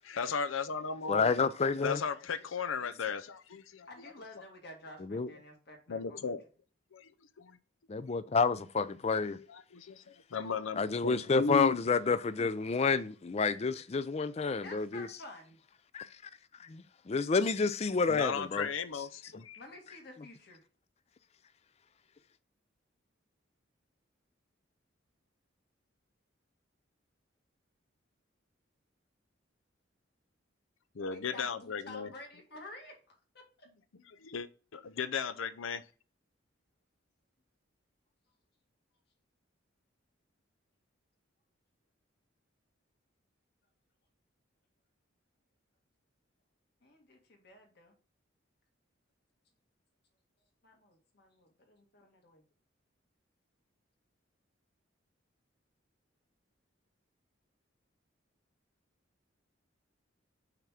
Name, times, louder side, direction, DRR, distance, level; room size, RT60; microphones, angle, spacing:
voice 1, 0.0-1.3 1.8-3.9 5.9-6.4 6.9-7.1 7.4-7.6 9.4-11.8 18.1-19.6 30.9-32.1 34.2-35.8, left 5 dB, 85° left, 0.6 m, -36 dB
voice 2, 1.1-2.0 5.1-5.3 7.9-9.4 10.8-15.1 15.9-16.1 16.6-18.7 19.3-19.4, left 4 dB, 30° left, 0.4 m, -29 dB
voice 3, 3.9-6.3 14.6-15.6 19.6-20.7 31.1-33.7 46.8-47.9 50.6-52.4, left 2 dB, 55° left, 1.9 m, -51 dB
5.8 x 3.5 x 5.7 m
head